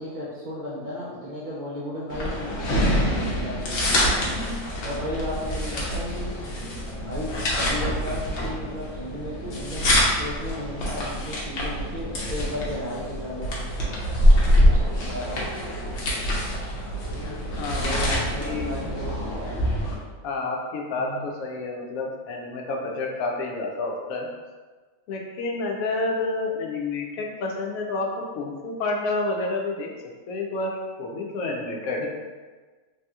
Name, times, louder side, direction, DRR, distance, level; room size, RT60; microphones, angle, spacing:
voice 1, 0.0-3.9 4.8-6.4 7.0-9.9 10.2-13.5 14.7-14.8 15.1-15.4 17.7-19.1 21.0-21.3, equal, 65° right, -7 dB, 0.4 m, -34 dB
sound 1, 2.1-19.9, equal, 60° left, 0.9 m, -25 dB
voice 2, 17.6-18.8 20.2-24.3 25.1-28.1 28.3-29.9 30.3-32.1, left 3 dB, 90° left, 0 dB, 1.0 m, -29 dB
3.3 x 2.8 x 2.3 m, 1.3 s
omnidirectional pair, 1.4 m